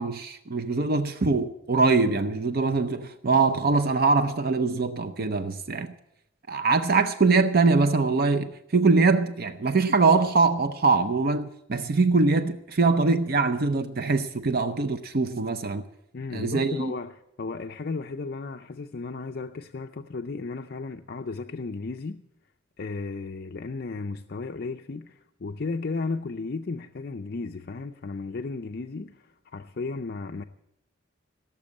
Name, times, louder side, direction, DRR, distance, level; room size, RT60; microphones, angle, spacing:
voice 1, 0.0-5.9 6.5-15.8 16.3-16.9, right 3 dB, 50° right, 0.6 m, -23 dB
voice 2, 16.1-22.2 22.8-30.4, left 3 dB, 50° left, 0.5 m, -34 dB
17.5 x 7.3 x 8.6 m
head